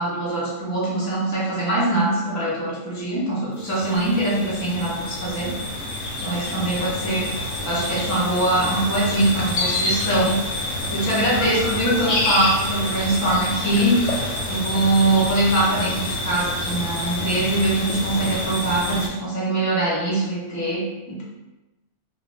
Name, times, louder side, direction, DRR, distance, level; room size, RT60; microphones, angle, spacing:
voice 1, 0.0-5.5 6.2-7.3 7.6-10.4 10.9-14.0 14.4-21.2, right 1 dB, 25° left, -7 dB, 0.4 m, -23 dB
sound 1, 3.6-19.1, left 1 dB, 70° left, 0.8 m, -27 dB
2.4 x 2.1 x 3.1 m, 1.1 s
omnidirectional pair, 1.6 m